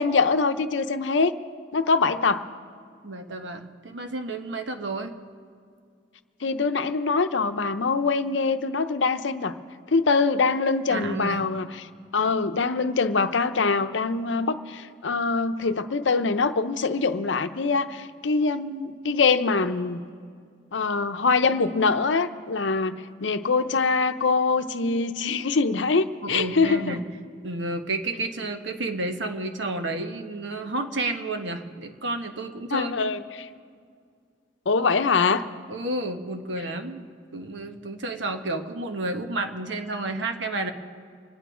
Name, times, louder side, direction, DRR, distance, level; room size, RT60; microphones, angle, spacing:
voice 1, 0.0-1.3 1.7-2.4 6.4-9.5 9.9-11.8 12.1-20.0 20.7-27.0 32.7-33.5 34.7-35.4, left 4 dB, 80° left, 10 dB, 0.7 m, -24 dB
voice 2, 3.0-5.1 10.9-11.4 26.2-27.0 27.4-33.1 35.7-37.1 37.3-40.7, right 2 dB, 75° right, 6 dB, 1.2 m, -31 dB
26.0 x 9.3 x 5.0 m, 2.2 s
head